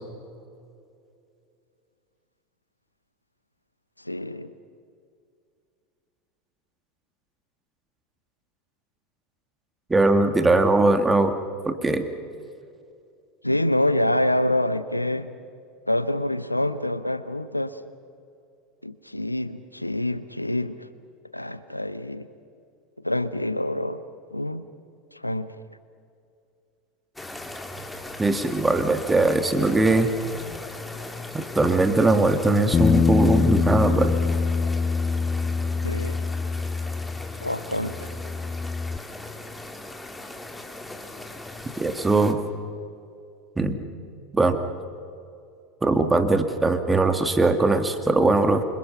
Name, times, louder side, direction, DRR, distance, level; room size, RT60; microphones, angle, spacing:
voice 1, 4.1-4.5 13.4-15.3 15.9-17.8 18.8-20.8 21.3-22.3 23.0-24.0 24.3-24.6 25.2-25.5 35.8-36.2 37.4-38.1 46.0-46.1, left 1 dB, 90° left, 15 dB, 0.8 m, -26 dB
voice 2, 9.9-11.4 11.6-12.1 28.2-30.1 31.3-34.2 41.8-42.4 43.6-43.8 44.3-44.6 45.8-48.6, right 2 dB, 10° right, 7 dB, 2.0 m, -20 dB
sound 1, 27.2-42.3, left 2 dB, 10° left, 2.0 m, -39 dB
Bass guitar, 32.7-37.5 37.8-39.0, left 5 dB, 25° left, 0.6 m, -24 dB
27.5 x 25.0 x 5.8 m, 2.5 s
figure-of-eight pair, 80°, 0 cm